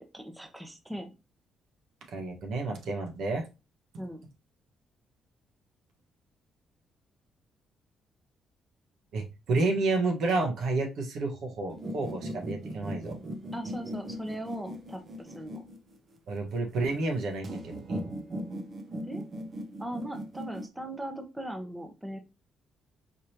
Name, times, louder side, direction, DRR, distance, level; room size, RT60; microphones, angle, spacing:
voice 1, 0.1-1.1 4.0-4.2 13.5-15.6 19.1-19.2 19.8-22.2, right 1 dB, 5° right, 5 dB, 0.9 m, -39 dB
voice 2, 2.1-3.4 9.1-13.2 16.3-18.1, right 3 dB, 75° right, 2 dB, 1.4 m, -30 dB
sound 1, 11.7-16.2 17.4-20.7, equal, 45° right, 0.9 m, -39 dB
5.1 x 3.1 x 2.9 m, 0.27 s
cardioid pair, 90°, 0 cm